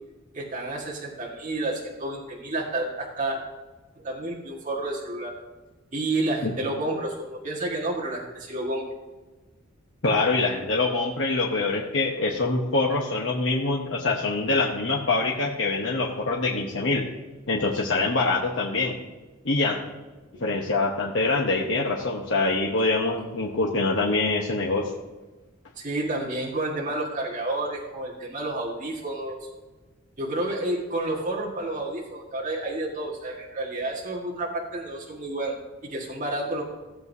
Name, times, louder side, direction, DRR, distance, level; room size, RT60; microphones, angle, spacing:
voice 1, 0.3-3.4 4.0-5.3 5.9-8.8 20.3-20.6 25.8-29.5 30.2-35.6 35.8-36.6, right 2 dB, 40° right, -3 dB, 1.7 m, -30 dB
voice 2, 10.0-17.0 17.5-18.9 19.4-19.8 20.4-24.9, left 3 dB, 70° left, -2 dB, 1.1 m, -24 dB
16.0 x 7.9 x 2.7 m, 1.2 s
head